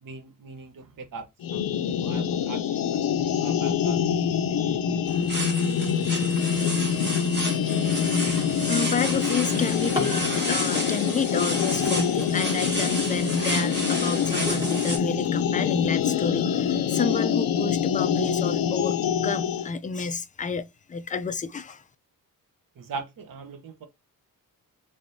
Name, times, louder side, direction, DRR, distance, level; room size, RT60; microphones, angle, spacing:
voice 1, 0.0-5.4 22.8-23.9, right 4 dB, 65° right, 0.9 m, -41 dB
sound 1, 1.4-19.7, left 8 dB, 70° left, 0.5 m, -25 dB
sound 2, 5.1-15.0, right 1 dB, 30° right, 1.6 m, -32 dB
voice 2, 8.7-19.0 19.2-21.8, left 5 dB, 25° left, 0.3 m, -30 dB
Drawer open or close, 11.3-12.9 13.4-15.9 16.5-16.6 17.1-17.2 17.6-18.0, equal, 15° right, 1.7 m, -38 dB
3.4 x 3.3 x 2.6 m
wide cardioid pair, 135°, 36 cm